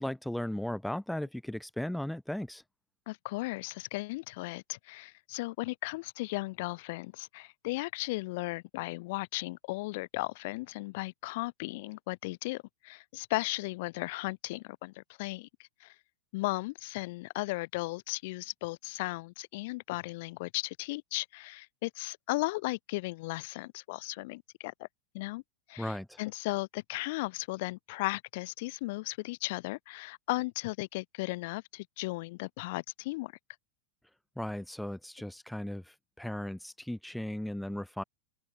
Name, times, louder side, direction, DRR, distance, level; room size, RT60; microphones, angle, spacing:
voice 1, 0.0-2.6 25.8-26.2 34.4-38.0, left 1 dB, ahead, 6.2 m, -36 dB
voice 2, 3.1-15.5 15.8-15.9 16.3-24.9 25.1-25.4 25.7-33.3, left 22 dB, 60° left, 7.9 m, -36 dB
supercardioid pair, 130°, 0 cm